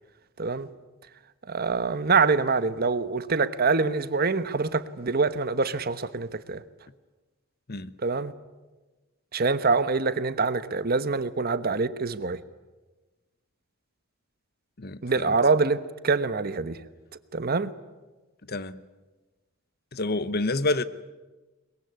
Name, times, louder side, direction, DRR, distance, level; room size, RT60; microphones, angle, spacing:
voice 1, 0.4-0.7 1.5-6.6 8.0-8.3 9.3-12.4 15.0-16.8 17.3-17.7, right 4 dB, 50° right, 1.1 m, -25 dB
voice 2, 14.8-15.3 18.5-18.8 19.9-20.8, left 2 dB, 50° left, 1.0 m, -28 dB
23.0 x 22.0 x 9.6 m
head